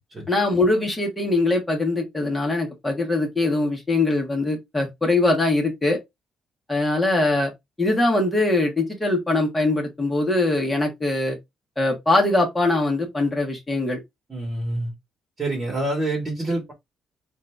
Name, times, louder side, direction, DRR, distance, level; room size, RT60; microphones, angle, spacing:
voice 1, 0.3-6.0 6.7-7.5 7.8-11.4 11.8-14.0, left 2 dB, 10° left, 1.7 m, -22 dB
voice 2, 14.3-14.9 15.4-16.7, right 2 dB, 25° right, 1.8 m, -26 dB
4.1 x 2.7 x 3.4 m
cardioid pair, 130°, 0 cm